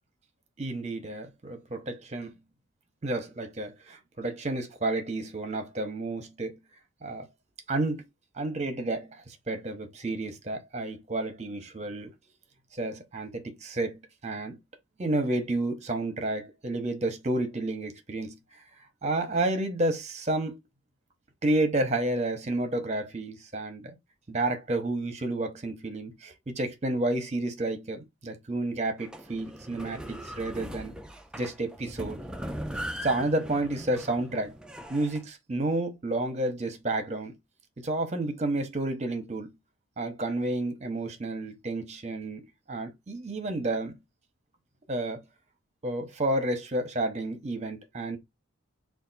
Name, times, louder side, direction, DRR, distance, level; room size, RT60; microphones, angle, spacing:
voice 1, 0.6-2.3 3.0-6.6 7.0-7.3 7.7-8.0 8.3-12.1 12.7-14.6 15.0-18.6 19.0-20.6 21.4-23.8 24.3-30.9 31.3-32.2 33.0-34.6 34.9-37.4 37.8-39.5 40.0-42.4 42.7-44.0 44.9-45.2 45.8-48.2, right 2 dB, 35° right, 0.9 m, -30 dB
sound 1, 29.0-35.2, equal, 5° right, 0.4 m, -39 dB
3.4 x 2.5 x 4.0 m
head